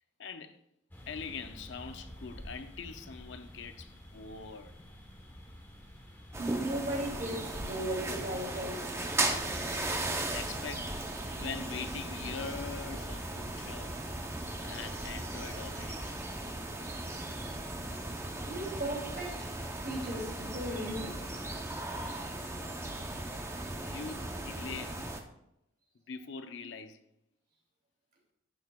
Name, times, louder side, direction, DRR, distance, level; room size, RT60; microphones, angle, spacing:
voice 1, 0.2-0.6 1.1-4.7 6.9-7.1 10.3-10.9 11.4-13.9 14.6-16.2 23.8-25.1 26.1-27.0, left 5 dB, 60° left, 0.5 m, -43 dB
sound 1, 0.9-16.2, equal, 10° left, 1.1 m, -50 dB
sound 2, 6.3-25.2, right 2 dB, 15° right, 0.6 m, -37 dB
voice 2, 6.4-9.0 18.5-19.5 19.8-21.2, right 1 dB, 45° right, 2.8 m, -36 dB
11.0 x 8.1 x 2.3 m
head